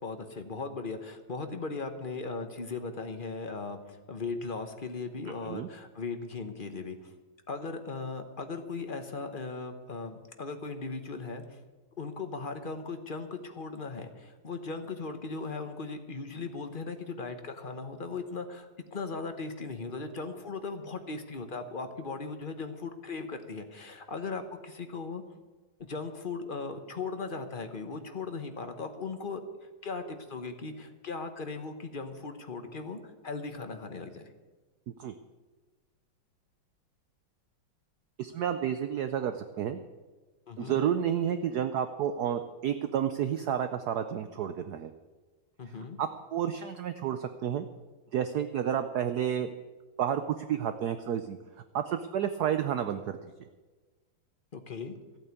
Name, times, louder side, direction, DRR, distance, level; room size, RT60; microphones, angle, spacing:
voice 1, 0.0-7.0 7.5-11.6 12.0-25.2 25.8-29.4 29.8-34.2 40.5-40.8 45.6-46.0 54.5-54.9, left 4 dB, 35° left, 7 dB, 0.9 m, -38 dB
voice 2, 38.2-39.8 40.6-44.9 46.0-47.7 48.1-49.5 50.0-51.4 51.7-53.2, right 9 dB, 65° right, 9 dB, 1.0 m, -30 dB
14.5 x 8.7 x 8.3 m, 1.3 s
omnidirectional pair, 2.2 m